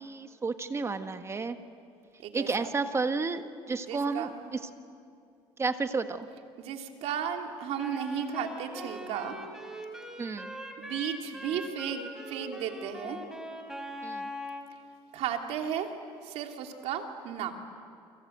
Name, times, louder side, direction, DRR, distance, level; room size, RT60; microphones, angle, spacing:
voice 1, 0.0-1.6 2.3-3.4 3.7-4.3 5.6-6.3 10.2-10.5 14.0-14.3, right 4 dB, 25° right, 8 dB, 1.5 m, -31 dB
voice 2, 2.2-2.7 3.8-4.5 6.6-9.3 10.8-13.2 15.1-15.9 16.2-17.5, right 8 dB, 70° right, 3 dB, 3.0 m, -34 dB
Wind instrument woodwind instrument, 7.8-14.7, equal, 5° right, 4.2 m, -41 dB
29.0 x 25.5 x 8.0 m, 2.5 s
cardioid pair, 105°, 11 cm